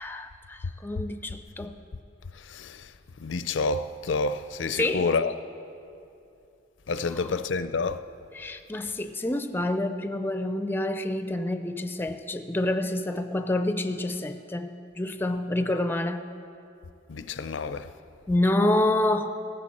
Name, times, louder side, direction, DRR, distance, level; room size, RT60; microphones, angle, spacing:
voice 1, 0.0-1.8 4.8-5.1 7.2-7.3 8.3-16.4 18.3-19.3, left 1 dB, 10° left, 0.4 m, -28 dB
voice 2, 2.4-2.9 3.2-5.3 6.9-8.0 17.1-17.9, left 4 dB, 85° left, 0.5 m, -28 dB
16.5 x 14.5 x 4.3 m
head